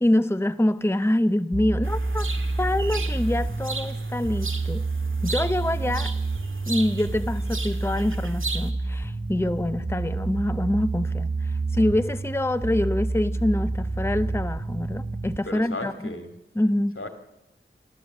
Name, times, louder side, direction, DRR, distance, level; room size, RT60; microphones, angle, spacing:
voice 1, 0.0-2.3 2.6-4.9 5.2-6.1 6.7-16.1 16.6-16.9, left 1 dB, 10° left, 10 dB, 0.8 m, -25 dB
sound 1, 1.5-15.4, right 3 dB, 25° right, 1.4 m, -28 dB
sound 2, 1.8-8.7, right 3 dB, 75° right, 1.8 m, -37 dB
voice 2, 15.5-16.4 17.0-17.1, left 2 dB, 75° left, 6 dB, 2.5 m, -34 dB
28.5 x 12.0 x 7.8 m, 0.92 s
wide cardioid pair, 45°, 21 cm